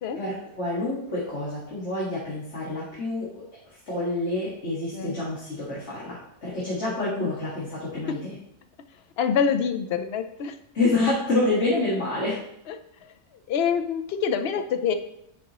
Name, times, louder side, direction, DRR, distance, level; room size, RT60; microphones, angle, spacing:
voice 1, 0.2-3.4 3.9-8.4 10.7-12.4, left 2 dB, 45° left, -7 dB, 2.0 m, -27 dB
voice 2, 6.8-7.3 7.9-8.2 9.2-10.5 12.7-12.8 13.5-14.9, left 7 dB, 65° left, 8 dB, 0.6 m, -26 dB
10.0 x 4.8 x 3.0 m, 0.76 s
omnidirectional pair, 1.6 m